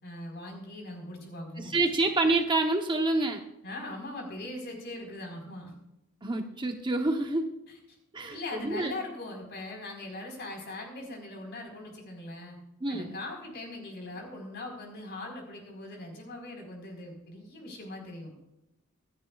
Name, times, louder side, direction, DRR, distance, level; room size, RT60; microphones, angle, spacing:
voice 1, 0.0-1.7 3.6-5.7 8.3-12.6 12.9-18.3, left 2 dB, 50° left, 1 dB, 4.5 m, -40 dB
voice 2, 1.6-3.4 6.2-7.5 8.1-8.9 12.8-13.1, right 2 dB, 20° right, 4 dB, 0.9 m, -27 dB
26.0 x 10.0 x 2.4 m, 0.89 s
head